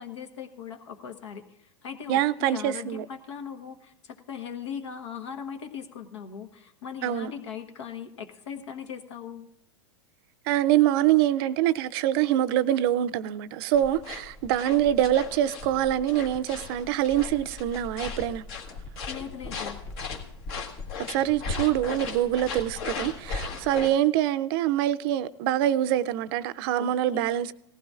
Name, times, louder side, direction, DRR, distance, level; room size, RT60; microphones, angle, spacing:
voice 1, 0.0-9.5 19.1-19.8 26.8-27.4, left 8 dB, 80° left, 1.3 m, -39 dB
voice 2, 2.1-3.1 7.0-7.3 10.5-18.4 21.1-27.5, right 12 dB, 55° right, 0.5 m, -25 dB
sound 1, 13.7-23.9, left 4 dB, 60° left, 1.7 m, -37 dB
18.5 x 15.0 x 2.5 m
hypercardioid pair, 120°, 15 cm